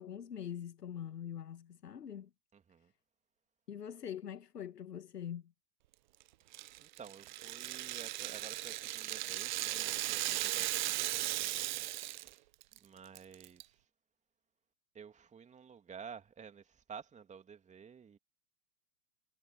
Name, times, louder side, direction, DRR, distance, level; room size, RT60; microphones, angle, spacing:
voice 1, 0.0-2.3 3.7-5.5, left 9 dB, 70° left, 1.4 m, -43 dB
voice 2, 2.5-2.9 6.8-12.5 12.7-13.9 14.9-18.2, right 6 dB, 15° right, 2.8 m, -52 dB
Rattle (instrument), 6.5-12.3 12.6-12.8 13.1-13.6, right 16 dB, 30° right, 0.5 m, -37 dB
figure-of-eight pair, 105°, 50 cm